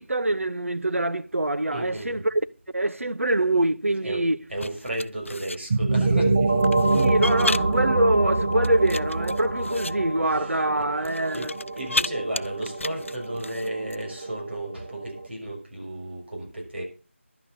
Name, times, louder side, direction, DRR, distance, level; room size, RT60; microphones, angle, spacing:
voice 1, 0.0-2.3 2.7-4.4 6.9-11.5, right 1 dB, 85° right, 1.0 m, -24 dB
voice 2, 1.7-2.3 4.0-4.2 4.5-6.7 7.0-7.1 10.0-16.8, right 1 dB, 55° right, 6.2 m, -34 dB
sound 1, 4.5-5.6 6.6-7.8 8.5-9.9 11.0-12.1 12.3-14.0, left 2 dB, 70° left, 0.5 m, -32 dB
sound 2, 5.7-15.3, right 2 dB, 15° right, 0.5 m, -26 dB
11.5 x 9.0 x 6.7 m
figure-of-eight pair, 170°, 7 cm